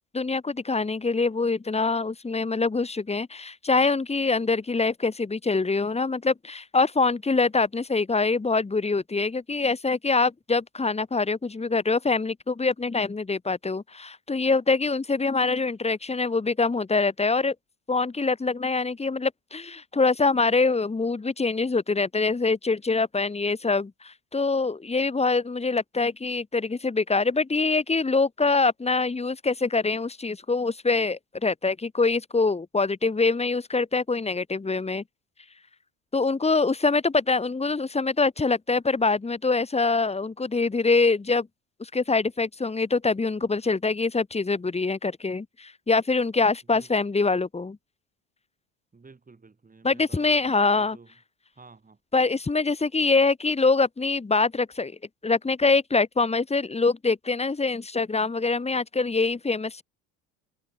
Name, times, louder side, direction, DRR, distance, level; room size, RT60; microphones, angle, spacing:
voice 1, 0.1-17.5 17.9-35.0 36.1-41.5 41.8-47.8 49.8-51.0 52.1-54.9 55.2-59.8, left 3 dB, 15° left, 2.1 m, -24 dB
voice 2, 46.7-47.1 48.9-51.1 51.5-52.0, right 4 dB, 20° right, 6.7 m, -52 dB
hypercardioid pair, 65°, 38 cm